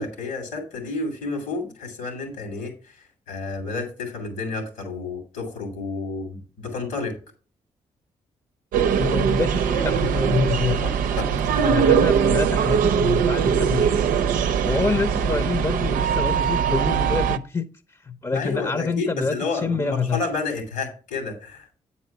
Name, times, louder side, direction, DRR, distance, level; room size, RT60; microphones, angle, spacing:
voice 1, 0.0-3.0 3.3-7.2 10.8-11.8 18.3-21.7, left 3 dB, 90° left, 3.0 m, -30 dB
sound 1, 8.7-17.4, right 7 dB, 85° right, 0.5 m, -21 dB
voice 2, 9.0-10.9 11.6-14.0 14.6-19.4 19.6-20.2, left 4 dB, 25° left, 0.7 m, -26 dB
8.7 x 4.3 x 5.8 m
supercardioid pair, 45°, 14 cm